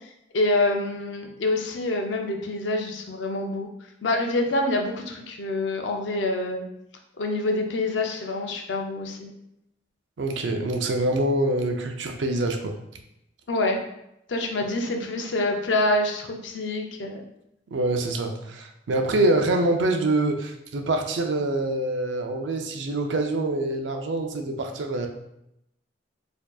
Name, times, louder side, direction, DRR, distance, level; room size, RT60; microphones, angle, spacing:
voice 1, 0.3-3.7 4.0-6.6 7.2-9.3 13.5-13.8 14.3-17.2, left 2 dB, 70° left, 3 dB, 0.5 m, -26 dB
voice 2, 10.2-12.7 17.7-25.1, right 2 dB, 70° right, 4 dB, 0.5 m, -25 dB
4.3 x 2.7 x 2.3 m, 0.82 s
head